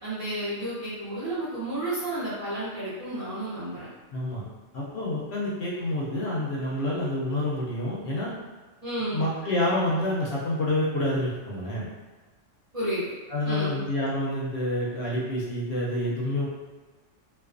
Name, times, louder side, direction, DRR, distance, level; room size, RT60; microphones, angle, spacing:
voice 1, 0.0-3.9 8.8-9.2 12.7-13.1 13.4-13.8, right 1 dB, 40° right, -11 dB, 0.5 m, -31 dB
voice 2, 4.1-4.4 4.7-8.3 9.1-11.9 13.3-16.5, left 1 dB, 65° left, -5 dB, 0.8 m, -28 dB
2.3 x 2.3 x 2.4 m, 1.3 s
omnidirectional pair, 1.3 m